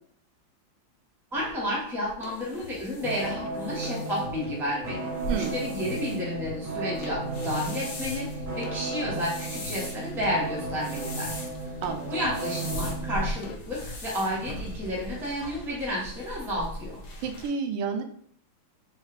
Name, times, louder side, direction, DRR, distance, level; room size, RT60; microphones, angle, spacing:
sound 1, 1.3-17.5, equal, 50° left, 1.1 m, -40 dB
voice 1, 1.3-11.4 12.1-17.0, left 1 dB, ahead, -5 dB, 0.7 m, -31 dB
sound 2, 2.2-6.0 6.4-6.6 7.0-8.2 8.6-9.2 9.6-9.8 10.2-10.8 11.2-11.4 11.8-12.4 12.8-13.0 13.4-14.0, left 7 dB, 90° left, 1.5 m, -44 dB
sound 3, 3.0-13.3, right 2 dB, 65° right, 1.8 m, -34 dB
voice 2, 5.3-5.6 11.8-12.1 17.2-18.0, right 5 dB, 85° right, 6 dB, 1.5 m, -30 dB
4.3 x 2.4 x 4.7 m, 0.63 s
omnidirectional pair, 2.3 m